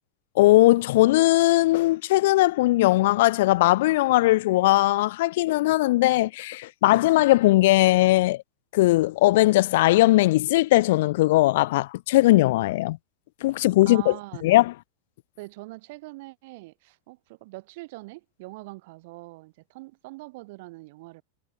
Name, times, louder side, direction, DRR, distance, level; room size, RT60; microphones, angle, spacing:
voice 1, 0.4-8.4 8.7-13.0 13.4-14.1 14.4-14.7, left 18 dB, 55° left, 0.3 m, -19 dB
voice 2, 13.8-14.5 15.4-21.2, right 23 dB, 50° right, 5.9 m, -42 dB
figure-of-eight pair, 90°, 0 cm